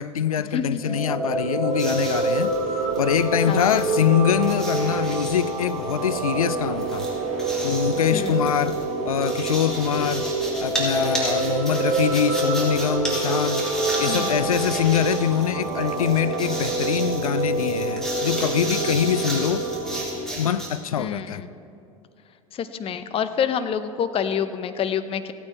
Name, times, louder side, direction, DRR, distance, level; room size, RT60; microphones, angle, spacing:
voice 1, 0.0-2.5 3.0-7.1 7.6-8.8 9.0-10.3 10.6-13.7 14.0-19.7 20.3-21.4, left 9 dB, 85° left, 15 dB, 0.4 m, -24 dB
voice 2, 0.5-1.0 3.5-3.8 8.1-8.5 14.1-14.5 21.0-21.5 22.5-25.3, left 7 dB, 30° left, 11 dB, 0.7 m, -27 dB
sound 1, 0.7-20.0, right 3 dB, 25° right, 2.8 m, -26 dB
sound 2, 1.7-20.7, right 1 dB, 5° left, 3.0 m, -34 dB
15.5 x 8.8 x 4.3 m, 2.5 s
hypercardioid pair, 80°, 18 cm